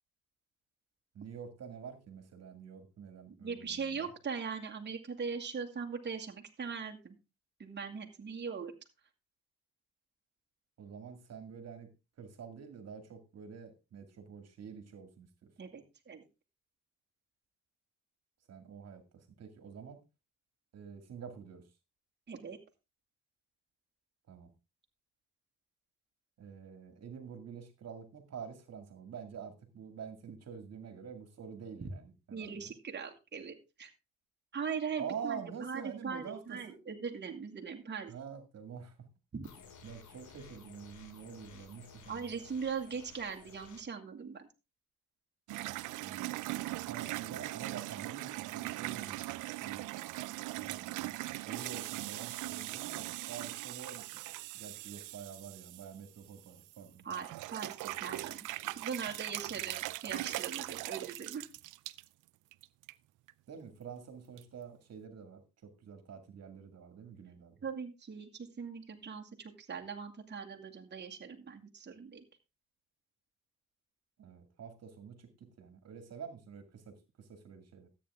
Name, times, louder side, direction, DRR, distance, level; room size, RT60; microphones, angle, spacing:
voice 1, 1.1-4.1 10.8-11.9 12.2-15.5 18.5-20.0 20.7-21.6 24.3-24.5 26.4-32.7 35.0-36.8 38.1-39.1 39.8-42.2 46.0-46.4 46.9-49.8 50.6-51.2 51.5-54.0 54.5-57.2 63.5-67.6 74.2-77.9, right 7 dB, 55° right, 8 dB, 2.2 m, -47 dB
voice 2, 3.4-7.2 7.6-8.7 15.6-16.2 22.3-22.6 31.8-31.9 32.3-33.9 34.5-38.1 39.3-39.5 42.1-44.5 57.0-58.5 58.8-61.5 67.6-72.2, right 6 dB, 35° right, 2 dB, 2.2 m, -40 dB
sound 1, 39.4-43.8, left 5 dB, 75° left, 2.6 m, -55 dB
sound 2, 45.5-56.8 57.1-62.0 62.5-62.9 63.3-63.4 64.4-64.5, right 18 dB, 85° right, 0.6 m, -40 dB
13.5 x 8.7 x 3.6 m, 0.28 s
cardioid pair, 90°, 30 cm